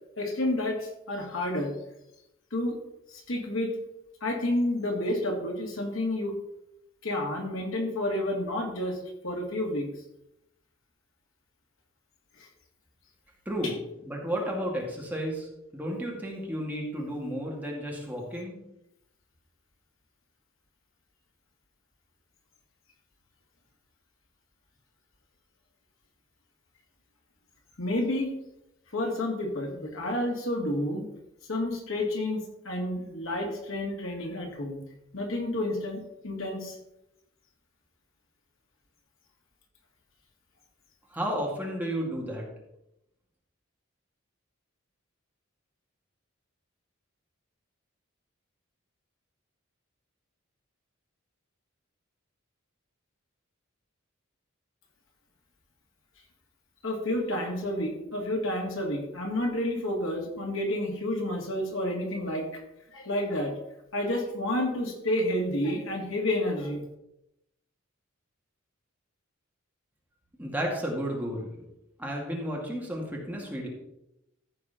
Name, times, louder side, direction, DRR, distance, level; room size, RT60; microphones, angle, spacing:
voice 1, 0.2-1.7 2.5-2.8 3.1-3.8 4.2-6.4 7.0-9.0 9.2-9.9 12.4-12.5 13.6-13.7 27.8-28.3 28.9-31.0 31.5-34.8 35.1-36.0 36.2-36.8 56.8-62.5 62.9-63.6 63.9-66.8, left 1 dB, 65° left, 1 dB, 2.6 m, -30 dB
voice 2, 13.5-13.8 14.0-15.5 15.7-18.6 41.1-42.4 70.4-71.5 72.0-73.7, equal, 10° right, -2 dB, 2.2 m, -32 dB
14.0 x 4.8 x 5.8 m, 0.86 s
head